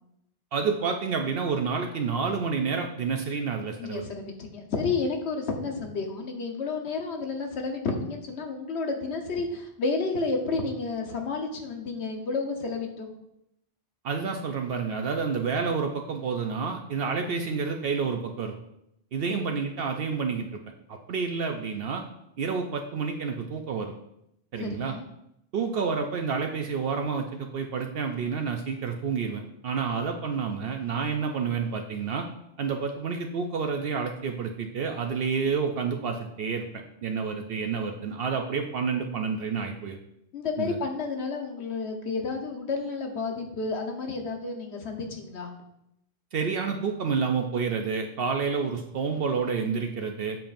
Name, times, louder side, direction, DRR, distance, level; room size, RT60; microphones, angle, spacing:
voice 1, 0.5-4.0 14.0-18.6 19.1-20.6 20.9-22.0 22.4-23.9 24.5-24.9 25.5-32.3 32.6-36.7 37.0-40.0 40.6-40.8 46.3-50.4, right 5 dB, 65° right, 4 dB, 0.8 m, -29 dB
voice 2, 3.8-13.1 19.3-19.5 24.6-25.0 40.3-45.5, left 4 dB, 85° left, 3 dB, 1.3 m, -31 dB
7.7 x 6.9 x 2.5 m, 0.81 s
omnidirectional pair, 1.1 m